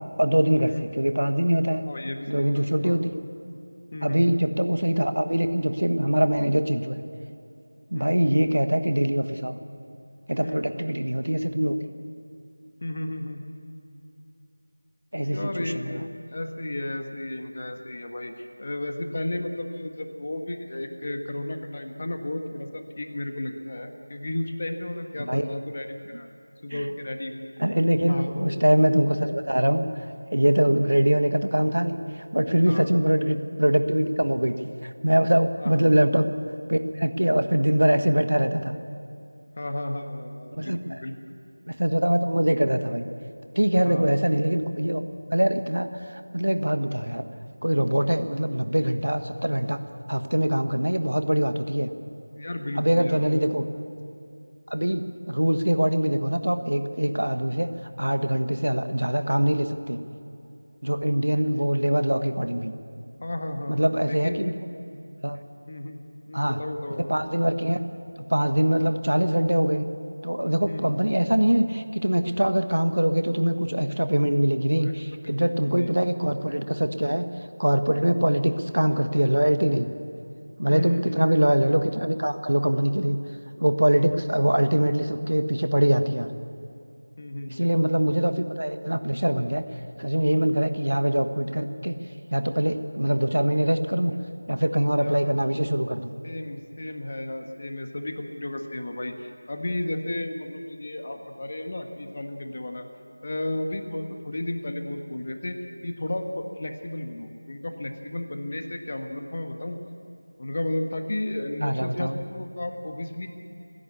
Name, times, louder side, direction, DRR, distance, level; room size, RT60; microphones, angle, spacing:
voice 1, 0.2-1.8 2.3-3.2 4.0-7.0 7.9-9.6 10.3-11.8 15.1-15.9 25.2-25.5 26.7-26.8 27.6-29.9 30.3-34.6 34.8-36.3 36.7-38.7 40.6-41.0 41.6-43.1 43.5-45.0 45.3-47.2 47.6-49.8 50.1-51.9 52.8-53.6 54.7-57.7 58.0-60.0 60.8-62.7 63.7-64.5 65.2-65.4 66.3-66.6 67.0-67.8 68.3-69.9 70.2-77.3 77.6-79.9 80.6-83.2 83.6-86.3 87.5-89.6 90.0-92.0 92.3-94.1 94.5-96.1 111.6-112.2, right 1 dB, 75° right, 9 dB, 1.4 m, -23 dB
voice 2, 1.8-3.0 3.9-4.4 7.9-8.1 10.4-10.6 12.8-13.5 15.3-26.3 26.6-27.7 28.0-28.6 30.6-30.8 32.7-32.9 35.6-35.9 39.5-41.1 43.8-44.1 52.4-53.5 63.2-63.8 64.0-64.6 65.6-67.1 70.7-70.9 74.8-74.9 75.2-75.9 78.1-78.2 80.7-81.3 81.6-81.7 87.2-87.7 95.0-95.3 96.2-102.9 103.2-105.6 105.8-109.8 110.4-113.3, left 1 dB, 35° left, 5 dB, 1.5 m, -33 dB
29.0 x 11.0 x 8.4 m, 2.6 s
figure-of-eight pair, 170°, 0 cm